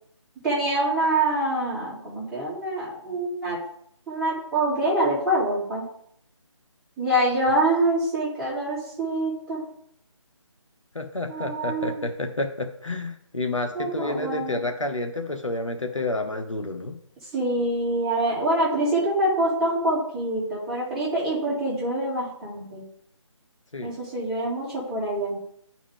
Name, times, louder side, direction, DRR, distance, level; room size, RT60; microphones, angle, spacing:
voice 1, 0.4-3.6 4.1-5.9 7.0-9.6 11.3-12.1 13.7-14.6 17.3-22.8 23.8-25.4, right 1 dB, 5° right, -12 dB, 2.8 m, -25 dB
voice 2, 10.9-17.0 23.7-23.9, left 2 dB, 75° left, 5 dB, 1.2 m, -29 dB
9.8 x 4.9 x 3.6 m, 0.68 s
figure-of-eight pair, 155°, 16 cm